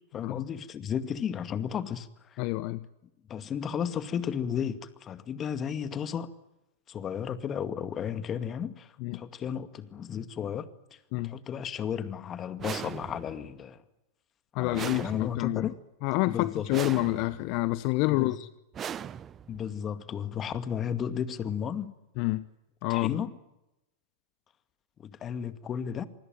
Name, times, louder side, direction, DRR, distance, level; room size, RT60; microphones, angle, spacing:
voice 1, 0.1-2.4 3.3-6.3 6.9-13.8 14.6-15.7 16.3-16.7 18.1-18.4 19.5-21.9 22.9-23.3 25.0-26.1, left 8 dB, 30° left, 2.2 m, -34 dB
voice 2, 2.4-2.8 9.0-9.2 11.1-11.3 14.5-15.7 16.0-18.5 22.2-22.4 22.8-23.2, left 21 dB, 50° left, 0.9 m, -28 dB
sound 1, 12.6-13.5 14.7-15.7 16.7-17.5 18.7-19.7, right 9 dB, 25° right, 0.9 m, -39 dB
27.0 x 20.5 x 9.1 m
hypercardioid pair, 110°, 0 cm